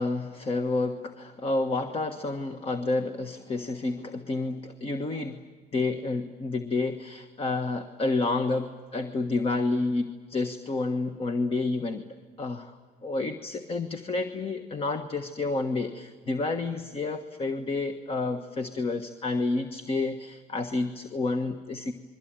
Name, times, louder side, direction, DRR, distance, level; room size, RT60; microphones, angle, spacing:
voice 1, 0.0-5.4 5.7-12.1 12.4-21.9, left 3 dB, 35° left, 7 dB, 1.4 m, -29 dB
28.5 x 22.5 x 9.0 m, 1.4 s
cardioid pair, 110°, 17 cm